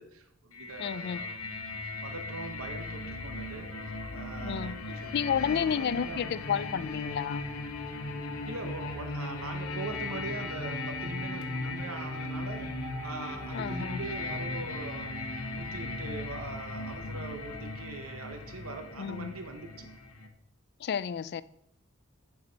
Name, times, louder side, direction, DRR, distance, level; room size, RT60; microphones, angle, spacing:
voice 1, 0.0-1.4 2.0-6.8 8.5-12.7 13.0-15.1 15.5-19.9, right 3 dB, 80° right, 0.8 m, -42 dB
sound 1, 0.5-20.3, left 2 dB, 90° left, 1.0 m, -37 dB
voice 2, 0.8-1.2 4.4-4.8 5.1-7.5 13.5-14.0 19.0-19.3 20.8-21.4, left 7 dB, 50° left, 0.3 m, -31 dB
9.6 x 4.9 x 3.9 m
head